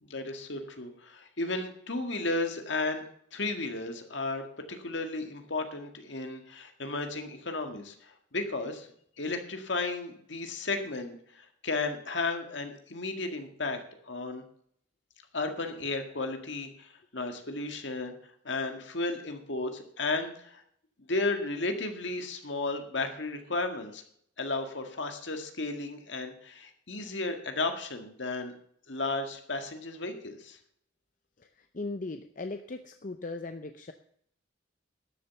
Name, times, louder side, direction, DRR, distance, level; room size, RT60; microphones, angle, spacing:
voice 1, 0.0-3.0 3.3-8.9 9.2-14.4 15.3-18.1 18.5-20.6 21.1-24.0 24.4-28.5 28.9-30.6, left 3 dB, 65° left, 6 dB, 1.8 m, -34 dB
voice 2, 31.4-33.9, left 3 dB, 40° left, 7 dB, 0.6 m, -38 dB
12.5 x 7.6 x 6.9 m, 0.66 s
head